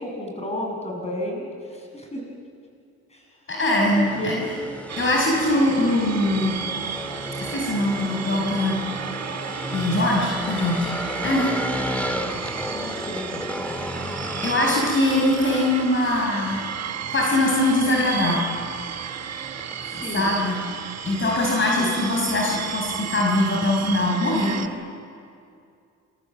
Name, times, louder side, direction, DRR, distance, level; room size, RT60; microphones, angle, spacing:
voice 1, 0.0-1.4 1.9-2.2 3.1-3.2 3.6-4.7 11.8-12.3 12.7-13.3 20.0-20.3 21.8-21.9, left 1 dB, 20° left, 0 dB, 7.1 m, -32 dB
voice 2, 3.5-4.3 5.0-6.6 7.4-8.8 9.7-10.9 11.2-11.5 14.4-16.6 17.1-18.4 19.9-20.6 21.0-24.6, left 1 dB, 40° left, -2 dB, 5.6 m, -22 dB
sound 1, 3.8-23.7, equal, 5° left, 2.2 m, -34 dB
sound 2, 4.9-24.7, right 8 dB, 60° right, 1.4 m, -33 dB
27.5 x 23.5 x 7.6 m, 2.4 s
cardioid pair, 90°, 30 cm